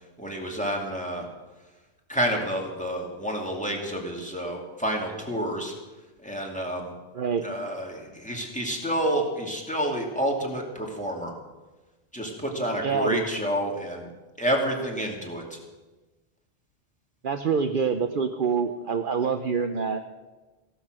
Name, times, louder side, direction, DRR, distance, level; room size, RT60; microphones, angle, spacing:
voice 1, 0.2-1.3 2.1-5.7 6.2-6.9 7.4-11.3 12.1-14.1 14.4-15.6, equal, 5° left, 0 dB, 2.6 m, -29 dB
voice 2, 7.1-7.5 12.8-13.2 17.2-20.0, right 6 dB, 55° right, 7 dB, 0.9 m, -26 dB
15.5 x 12.0 x 6.2 m, 1.2 s
omnidirectional pair, 1.1 m